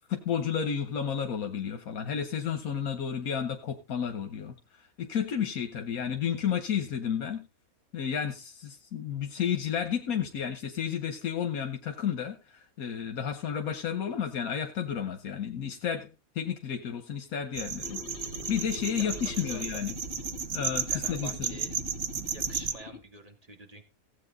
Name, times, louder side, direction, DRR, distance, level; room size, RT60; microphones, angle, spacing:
voice 1, 0.1-4.5 5.0-7.4 7.9-16.1 16.3-18.0 18.5-19.9 20.5-21.3, left 8 dB, 80° left, 5 dB, 1.5 m, -32 dB
sound 1, 17.5-22.7, right 7 dB, 80° right, 1.4 m, -34 dB
sound 2, 17.8-23.0, left 7 dB, 45° left, 0.9 m, -44 dB
voice 2, 18.9-20.0 20.9-21.8 22.3-23.8, right 2 dB, 25° right, 4 dB, 2.2 m, -47 dB
16.0 x 8.3 x 4.0 m, 0.29 s
omnidirectional pair, 1.5 m